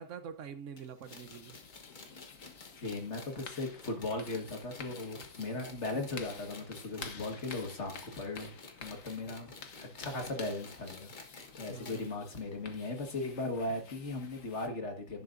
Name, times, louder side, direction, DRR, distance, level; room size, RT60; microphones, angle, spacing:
voice 1, 0.0-1.6 11.7-12.1, right 7 dB, 65° right, 1.2 m, -45 dB
sound 1, 0.8-12.1 12.4-12.5 12.7-12.8 13.7-13.8, left 3 dB, 35° left, 1.3 m, -51 dB
sound 2, 1.0-14.7, left 5 dB, 70° left, 1.5 m, -51 dB
voice 2, 2.8-11.1 11.5-15.2, left 2 dB, 55° left, 2.0 m, -38 dB
11.0 x 10.5 x 2.6 m
omnidirectional pair, 1.4 m